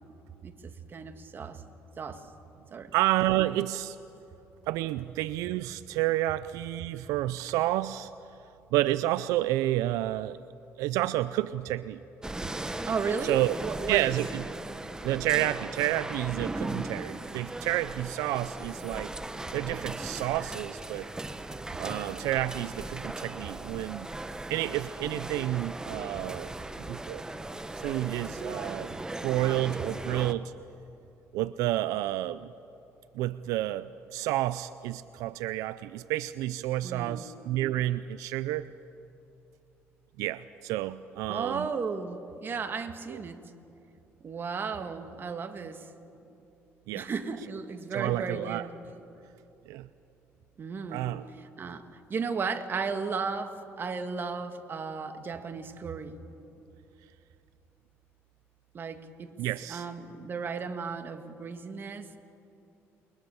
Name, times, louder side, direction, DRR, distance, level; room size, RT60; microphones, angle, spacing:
voice 1, 0.4-1.6 2.0-2.3 2.7-2.9 12.9-14.2 36.8-37.3 41.3-43.4 44.2-45.9 46.9-48.7 50.6-51.1 51.6-56.2 58.7-59.3 59.7-62.2, right 5 dB, 40° right, 7 dB, 1.9 m, -35 dB
voice 2, 2.9-4.0 4.7-8.1 8.7-10.4 10.8-12.0 13.2-13.6 13.9-14.4 15.0-19.1 19.5-21.1 21.8-24.1 24.5-26.5 26.9-27.2 27.7-29.0 29.2-30.5 31.3-32.5 33.1-38.7 40.2-41.7 43.1-43.2 46.9-47.1 47.9-48.7 49.7-49.9 50.9-51.3 59.4-59.9, right 15 dB, 85° right, 15 dB, 0.5 m, -30 dB
sound 1, 12.2-30.3, right 2 dB, 10° right, 1.2 m, -38 dB
29.0 x 22.0 x 7.2 m, 2.8 s
cardioid pair, 95°, 6 cm